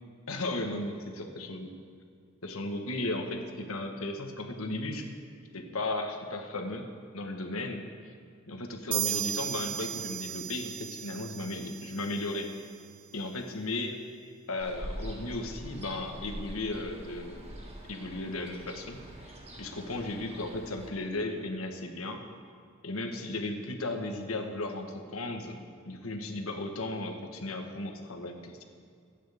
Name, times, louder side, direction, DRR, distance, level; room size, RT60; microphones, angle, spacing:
voice 1, 0.3-1.7 2.4-5.0 5.5-6.9 7.1-8.1 8.5-12.5 13.1-14.0 14.5-17.4 17.9-19.3 19.6-22.2 22.8-25.6 25.9-28.6, left 2 dB, 80° left, 4 dB, 1.4 m, -35 dB
sound 1, 8.9-12.5, right 10 dB, 70° right, 0.7 m, -35 dB
Ocean, 14.6-20.9, equal, 30° right, 1.7 m, -44 dB
23.0 x 9.1 x 3.6 m, 2.2 s
head